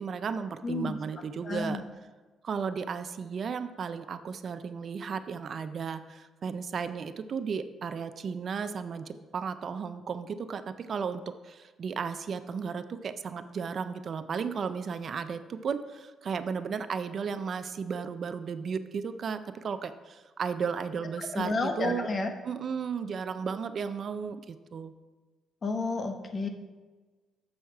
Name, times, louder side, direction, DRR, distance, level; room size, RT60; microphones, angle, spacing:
voice 1, 0.0-1.8 2.4-22.1 22.4-24.9, right 6 dB, 50° right, 11 dB, 0.4 m, -34 dB
voice 2, 0.6-1.0 1.4-1.8 21.3-22.3 25.6-26.5, left 3 dB, 40° left, 6 dB, 0.9 m, -31 dB
7.3 x 6.3 x 4.6 m, 1.3 s
cardioid pair, 90°, 0 cm